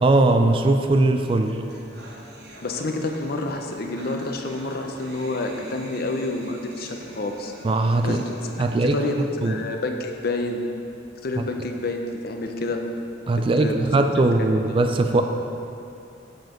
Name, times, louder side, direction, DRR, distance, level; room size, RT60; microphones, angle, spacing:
voice 1, 0.0-1.6 7.6-8.3 8.6-9.0 9.4-9.6 11.4-11.5 13.3-15.2, right 2 dB, 30° right, 6 dB, 0.3 m, -20 dB
sound 1, 1.2-9.2, right 2 dB, 60° right, 1.1 m, -44 dB
voice 2, 2.6-7.5 8.0-9.2 9.4-10.6 11.2-12.8 13.4-13.8, left 2 dB, 55° left, 4 dB, 0.6 m, -29 dB
6.8 x 6.2 x 5.0 m, 2.6 s
head